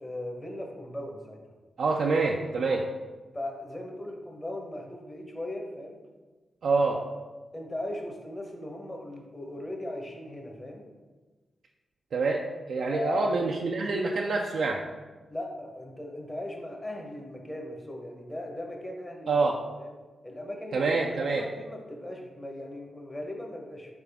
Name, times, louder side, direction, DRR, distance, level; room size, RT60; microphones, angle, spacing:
voice 1, 0.0-1.4 3.3-6.0 7.5-10.8 12.9-13.3 15.3-19.4 19.8-19.9 20.2-20.9 21.2-23.9, left 1 dB, 25° left, 1 dB, 1.0 m, -38 dB
voice 2, 1.8-2.8 6.6-7.0 12.1-12.4 12.7-14.8 19.3-19.5 20.7-21.4, right 3 dB, 70° right, -1 dB, 0.3 m, -26 dB
3.9 x 3.6 x 3.5 m, 1.3 s
supercardioid pair, 40°, 0 cm